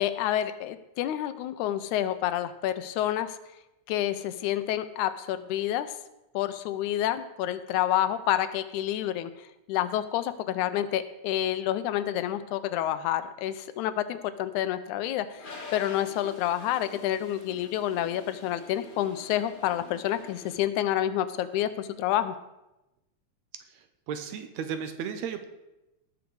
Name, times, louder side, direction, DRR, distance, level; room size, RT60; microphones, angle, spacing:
voice 1, 0.0-3.4 3.9-5.9 6.3-22.4, left 12 dB, 80° left, 12 dB, 2.0 m, -29 dB
Toilet flush, 15.4-20.6, left 3 dB, 40° left, 0.7 m, -47 dB
voice 2, 23.7-25.5, right 7 dB, 75° right, 8 dB, 1.9 m, -35 dB
18.5 x 6.2 x 4.7 m, 0.95 s
omnidirectional pair, 3.5 m